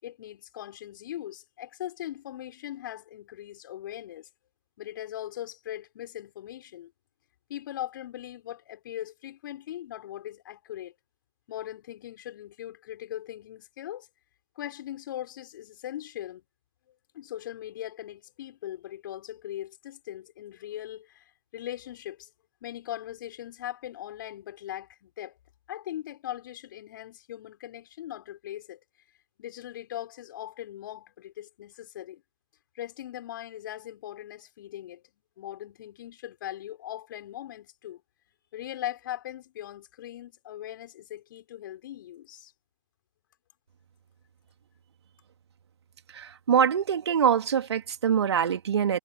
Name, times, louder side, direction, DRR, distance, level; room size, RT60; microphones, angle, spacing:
voice 1, 0.0-4.3 4.8-6.9 7.5-10.9 11.5-14.1 14.6-16.4 17.1-22.3 22.6-25.4 25.7-28.8 29.4-32.2 32.7-35.0 35.4-38.0 38.5-42.5, left 12 dB, 35° left, 5.9 m, -40 dB
voice 2, 46.1-49.0, right 8 dB, 50° right, 3.1 m, -24 dB
figure-of-eight pair, 140°, 18 cm